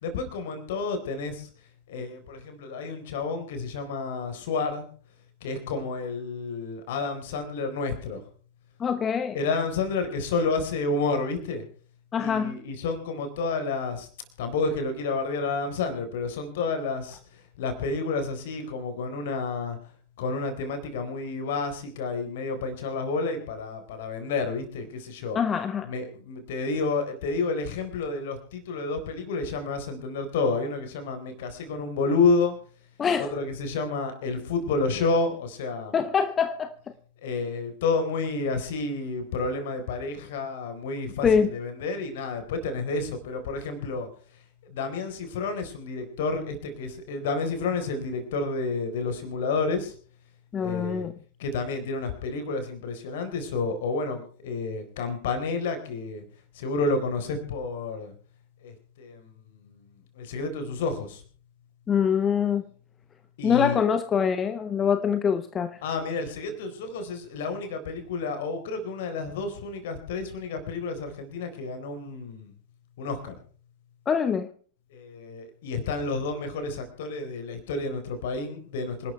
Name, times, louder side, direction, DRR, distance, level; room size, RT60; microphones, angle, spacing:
voice 1, 0.0-1.5 1.9-4.9 5.4-8.2 9.3-11.6 12.2-14.1 14.4-19.8 20.2-25.4 25.8-32.5 33.2-36.0 37.2-44.1 44.6-50.0 50.6-51.1 51.4-56.2 56.5-58.1 58.6-61.2 63.4-63.8 65.8-72.5 73.0-73.3 74.9-79.1, left 3 dB, 55° left, 4.1 m, -30 dB
voice 2, 8.8-9.4 12.1-12.6 25.3-25.9 33.0-33.3 35.9-36.7 41.2-41.5 50.5-51.1 61.9-62.6 63.4-65.8 74.1-74.5, left 7 dB, 20° left, 1.0 m, -24 dB
26.5 x 12.5 x 3.3 m
figure-of-eight pair, 90°, 0 cm